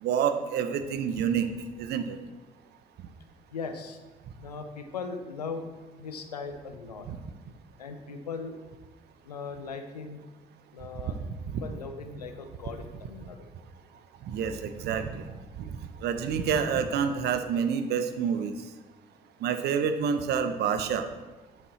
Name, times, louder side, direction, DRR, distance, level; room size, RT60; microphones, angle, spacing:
voice 1, 0.0-1.5 1.8-2.2 7.1-7.2 11.5-11.6 14.3-15.3 16.0-18.5 19.4-21.0, right 7 dB, 60° right, 8 dB, 0.8 m, -28 dB
voice 2, 3.5-4.0 4.4-5.6 6.0-7.1 7.8-8.5 9.2-10.2 10.7-11.2 11.6-13.5, left 4 dB, 90° left, 7 dB, 0.6 m, -38 dB
8.2 x 5.3 x 4.2 m, 1.2 s
hypercardioid pair, 50°, 20 cm